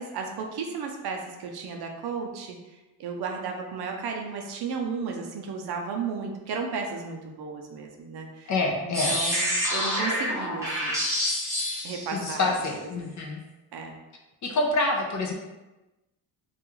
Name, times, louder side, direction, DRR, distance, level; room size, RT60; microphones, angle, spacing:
voice 1, 0.0-8.5 8.8-10.9 11.8-12.5 12.8-13.1 13.7-14.0, right 5 dB, 65° right, 2 dB, 0.5 m, -34 dB
voice 2, 8.5-9.2 12.1-13.4 14.4-15.3, left 2 dB, 45° left, 1 dB, 0.4 m, -27 dB
sound 1, 8.9-12.7, left 1 dB, 5° right, 0.7 m, -28 dB
2.4 x 2.3 x 3.0 m, 1.1 s
cardioid pair, 130°, 42 cm